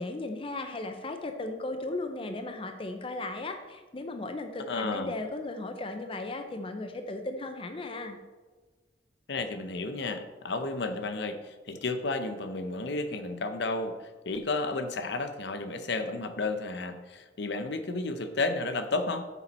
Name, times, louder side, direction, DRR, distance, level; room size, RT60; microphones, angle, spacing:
voice 1, 0.0-8.2, left 2 dB, 30° left, 6 dB, 0.6 m, -36 dB
voice 2, 4.7-5.1 9.3-14.0 14.3-19.3, left 3 dB, 65° left, 9 dB, 0.7 m, -32 dB
8.6 x 7.0 x 4.2 m, 1.3 s
head